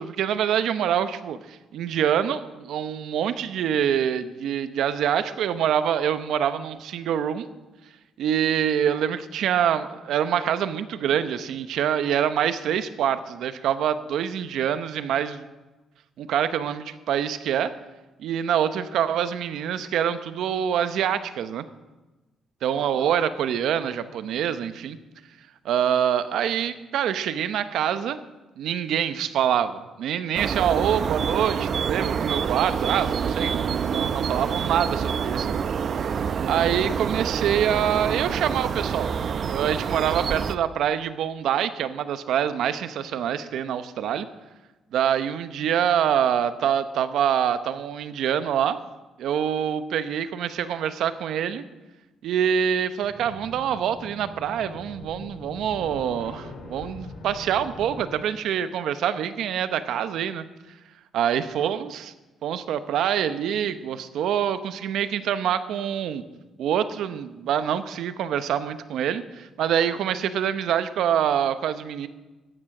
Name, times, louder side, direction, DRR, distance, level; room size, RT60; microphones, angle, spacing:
voice 1, 0.0-7.5 8.2-15.5 16.2-17.7 18.2-21.7 22.6-25.0 25.6-28.2 28.6-35.6 35.9-39.1 39.5-44.3 44.9-48.8 49.2-51.6 52.2-60.4 61.1-62.1 62.4-66.2 66.6-72.1, right 9 dB, 80° right, 12 dB, 0.9 m, -25 dB
sound 1, 30.3-40.5, right 7 dB, 55° right, 0.6 m, -27 dB
sound 2, 53.0-58.1, left 2 dB, 80° left, 3.5 m, -42 dB
14.0 x 10.0 x 6.0 m, 1.1 s
cardioid pair, 90°, 0 cm